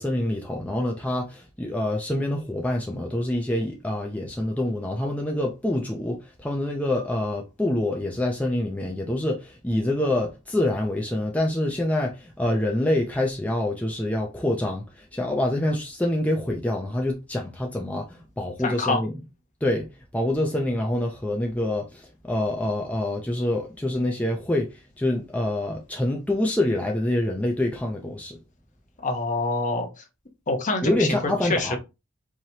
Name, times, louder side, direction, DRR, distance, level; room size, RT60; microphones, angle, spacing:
voice 1, 0.0-19.1 19.6-28.4 30.8-31.8, left 1 dB, 5° left, 0.6 m, -26 dB
voice 2, 18.6-19.0 29.0-30.0 30.5-31.1 31.4-31.8, left 2 dB, 35° left, 1.0 m, -26 dB
4.8 x 2.9 x 2.8 m
head